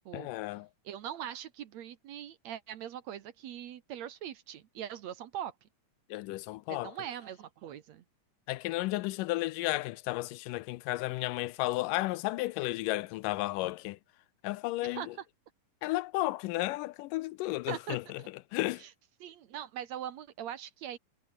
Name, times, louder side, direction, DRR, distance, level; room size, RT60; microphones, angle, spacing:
voice 1, 0.1-0.7 6.1-6.9 8.5-14.0 14.4-15.2 15.8-18.2 18.5-18.8, left 19 dB, 85° left, 2.2 m, -33 dB
voice 2, 0.9-5.5 6.7-8.0 14.9-15.1 17.7-18.3 18.8-18.9 19.2-21.0, right 10 dB, 65° right, 2.2 m, -41 dB
omnidirectional pair, 3.8 m